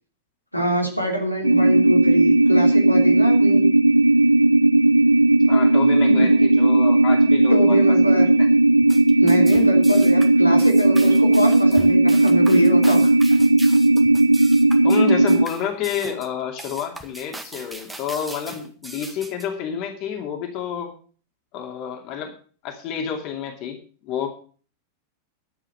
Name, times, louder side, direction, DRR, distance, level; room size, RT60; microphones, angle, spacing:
voice 1, 0.5-3.7 6.1-6.3 7.5-8.3 9.2-13.1, equal, 90° left, 1 dB, 3.0 m, -24 dB
sound 1, 1.4-15.4, right 2 dB, 80° right, 0.5 m, -16 dB
voice 2, 5.5-8.5 14.8-20.9 21.5-22.4 22.6-24.3, left 8 dB, 40° left, 3 dB, 2.6 m, -29 dB
sound 2, 8.8-19.5, right 2 dB, 5° right, 1.8 m, -39 dB
11.5 x 7.6 x 7.7 m, 0.41 s
figure-of-eight pair, 90°, 0 cm